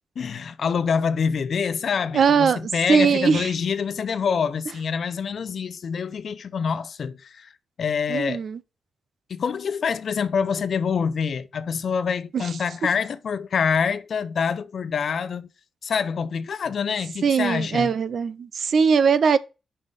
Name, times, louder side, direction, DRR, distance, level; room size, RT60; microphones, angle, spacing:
voice 1, 0.2-7.5 7.8-8.4 9.3-15.5 15.8-17.9, left 6 dB, 60° left, 0.6 m, -26 dB
voice 2, 2.1-3.5 8.1-8.6 12.3-12.4 17.2-19.4, right 6 dB, 65° right, 0.5 m, -20 dB
5.5 x 5.3 x 6.6 m
wide cardioid pair, 130°, 0 cm